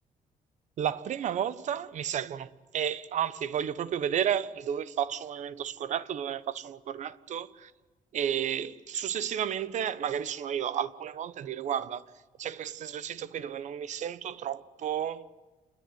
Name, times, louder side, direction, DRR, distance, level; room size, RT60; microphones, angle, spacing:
voice 1, 0.8-7.5 8.1-12.0 12.4-15.3, right 9 dB, 60° right, 1.1 m, -32 dB
28.0 x 21.0 x 9.4 m
cardioid pair, 135°, 14 cm